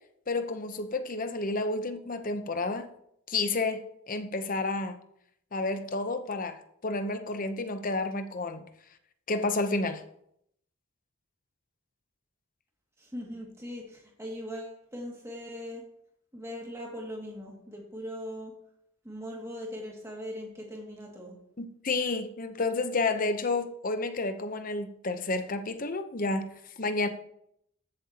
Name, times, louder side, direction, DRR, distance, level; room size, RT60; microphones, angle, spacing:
voice 1, 0.3-2.9 3.3-5.0 5.5-6.6 6.8-8.6 9.3-10.0 21.6-26.5 26.8-27.1, left 3 dB, 40° left, 0.8 m, -30 dB
voice 2, 13.0-15.8 16.3-18.5 19.0-21.4, equal, 15° right, 2.1 m, -40 dB
14.0 x 7.6 x 2.9 m
head